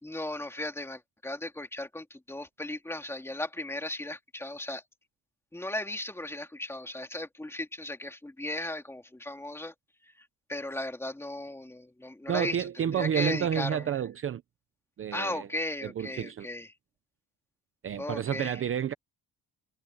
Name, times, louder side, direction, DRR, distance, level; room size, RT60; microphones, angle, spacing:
voice 1, 0.0-4.8 5.5-9.7 10.0-12.7 13.0-13.8 15.1-16.7 18.0-18.6, left 1 dB, 5° left, 2.8 m, -36 dB
voice 2, 12.3-14.4 15.0-15.5 15.8-16.5 17.8-18.9, right 9 dB, 35° right, 0.8 m, -30 dB
cardioid pair, 170°, 36 cm